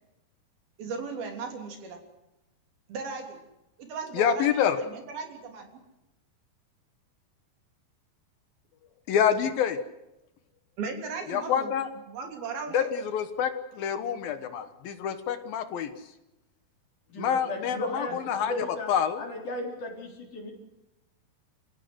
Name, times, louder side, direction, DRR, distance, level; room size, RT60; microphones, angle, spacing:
voice 1, 0.8-2.0 2.9-3.4 3.8-5.8 10.8-11.7 12.1-12.9 18.1-18.2, right 4 dB, 70° right, 4 dB, 5.2 m, -37 dB
voice 2, 4.1-4.8 9.1-9.8 11.3-11.9 12.7-15.9 17.2-19.2, left 8 dB, 70° left, 9 dB, 2.9 m, -27 dB
voice 3, 17.1-18.2 18.5-18.9 19.2-20.5, left 1 dB, 50° left, 2 dB, 5.2 m, -35 dB
28.5 x 16.5 x 8.0 m, 0.93 s
omnidirectional pair, 4.5 m